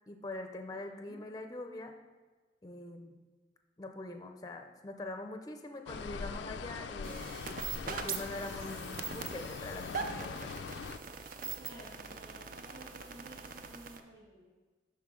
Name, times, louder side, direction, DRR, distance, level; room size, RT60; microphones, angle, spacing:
voice 1, 0.1-1.9 2.6-3.2 3.8-7.4 7.9-10.6, left 2 dB, 20° left, 5 dB, 0.5 m, -43 dB
voice 2, 0.9-1.2 11.6-14.5, right 1 dB, 75° right, -4 dB, 2.1 m, -54 dB
sound 1, 5.9-11.0, left 5 dB, 75° left, 0.4 m, -42 dB
sound 2, 7.0-14.0, right 5 dB, 50° right, 0.5 m, -42 dB
11.5 x 4.3 x 3.7 m, 1.3 s
head